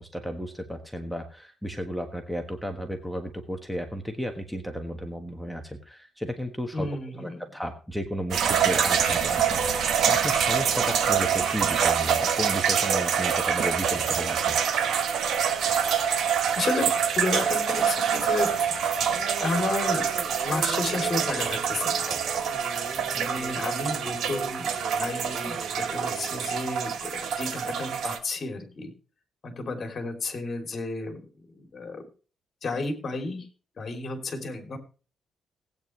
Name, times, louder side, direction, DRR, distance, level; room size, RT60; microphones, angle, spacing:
voice 1, 0.0-6.9 7.2-14.6 22.1-22.2, equal, ahead, 4 dB, 1.4 m, -33 dB
voice 2, 6.7-7.4 16.5-16.9 17.2-18.8 19.4-20.1 20.4-22.1 23.1-28.9 29.4-32.0 32.6-33.5 33.8-34.8, left 3 dB, 45° left, 4 dB, 3.0 m, -32 dB
sound 1, 8.3-28.2, right 7 dB, 80° right, 1.4 m, -26 dB
sound 2, 19.0-26.7, right 2 dB, 30° right, 2.9 m, -41 dB
18.0 x 9.1 x 3.1 m, 0.37 s
cardioid pair, 110°, 0 cm